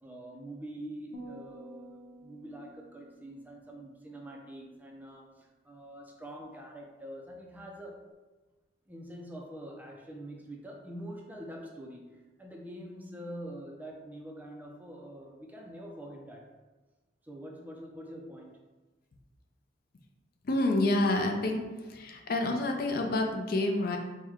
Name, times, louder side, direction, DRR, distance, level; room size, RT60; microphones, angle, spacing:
voice 1, 0.0-8.0 8.9-16.5 17.2-18.6, right 1 dB, 10° right, 0 dB, 0.4 m, -45 dB
sound 1, 1.1-4.5, right 1 dB, 30° left, 0.8 m, -51 dB
voice 2, 20.4-21.6 21.9-24.0, left 2 dB, 50° left, 3 dB, 0.4 m, -28 dB
4.6 x 2.1 x 3.5 m, 1.2 s
head